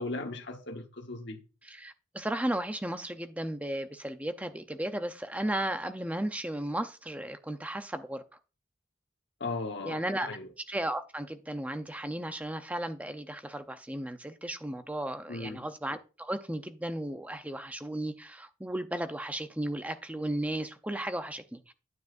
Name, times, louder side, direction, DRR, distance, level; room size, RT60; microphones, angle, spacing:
voice 1, 0.0-1.4 9.4-10.5 15.3-15.6, left 3 dB, 55° left, 1.2 m, -37 dB
voice 2, 1.6-8.2 9.8-10.3 10.7-21.7, right 1 dB, 5° right, 0.6 m, -35 dB
9.4 x 9.2 x 2.5 m
head